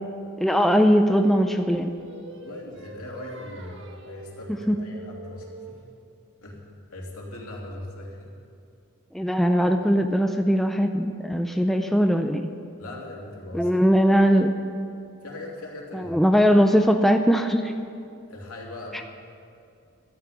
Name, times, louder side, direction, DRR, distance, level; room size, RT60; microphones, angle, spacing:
voice 1, 0.4-1.9 4.7-4.8 9.1-12.4 13.5-14.5 15.9-17.7, equal, ahead, 5 dB, 0.5 m, -20 dB
Singing, 0.7-5.9, right 2 dB, 55° right, 1.4 m, -44 dB
voice 2, 2.3-5.8 6.4-8.3 12.8-13.7 15.2-16.1 18.3-19.0, left 1 dB, 80° left, -2 dB, 3.0 m, -39 dB
13.0 x 9.5 x 9.3 m, 2.5 s
head